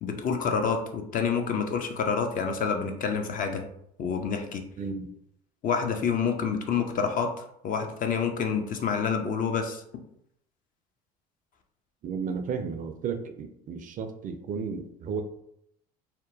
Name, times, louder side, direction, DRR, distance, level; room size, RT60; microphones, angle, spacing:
voice 1, 0.0-3.6 4.0-4.6 5.6-7.3 7.6-9.8, left 6 dB, 40° left, 5 dB, 0.5 m, -28 dB
voice 2, 4.8-5.1 12.0-15.2, right 5 dB, 40° right, 7 dB, 0.4 m, -33 dB
2.8 x 2.1 x 2.7 m, 0.74 s
hypercardioid pair, 70°, 21 cm